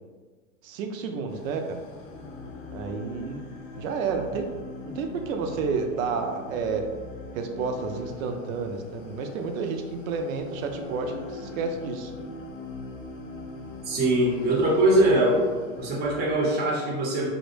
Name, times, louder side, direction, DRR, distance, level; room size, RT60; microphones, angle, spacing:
voice 1, 0.6-1.8 2.7-3.5 3.8-4.5 4.8-6.9 7.3-12.1, right 5 dB, 75° right, 5 dB, 0.5 m, -30 dB
sound 1, 1.3-16.5, left 2 dB, 70° left, 0.6 m, -41 dB
voice 2, 13.8-15.5 15.8-17.3, right 1 dB, 25° right, -2 dB, 0.6 m, -22 dB
2.1 x 2.0 x 3.0 m, 1.4 s
hypercardioid pair, 120°, 40 cm